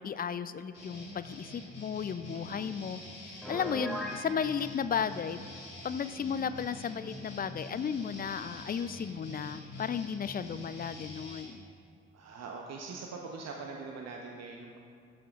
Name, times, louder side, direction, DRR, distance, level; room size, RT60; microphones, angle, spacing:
voice 1, 0.0-5.4 5.8-11.7, left 7 dB, 25° left, 14 dB, 0.5 m, -34 dB
sound 1, 0.7-11.4, left 1 dB, 90° left, 1.6 m, -46 dB
voice 2, 2.3-2.7 3.9-4.0 12.1-14.8, right 4 dB, 50° right, 1 dB, 1.1 m, -43 dB
Piano, 3.4-4.2, equal, ahead, 2.8 m, -37 dB
15.0 x 13.5 x 2.5 m, 2.2 s
figure-of-eight pair, 45°, 34 cm